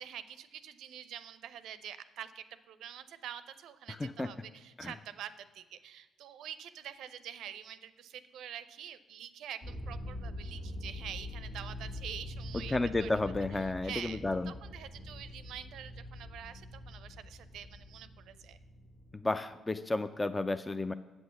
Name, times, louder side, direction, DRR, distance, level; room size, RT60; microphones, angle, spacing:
voice 1, 0.0-13.1 13.5-14.2 14.5-18.6, right 9 dB, 75° right, 13 dB, 0.5 m, -46 dB
sound 1, 9.6-19.1, left 1 dB, 80° left, 1.9 m, -44 dB
voice 2, 12.5-14.5 19.1-20.9, left 2 dB, 20° left, 10 dB, 0.4 m, -32 dB
7.8 x 6.3 x 7.1 m, 1.3 s
supercardioid pair, 60°, 0 cm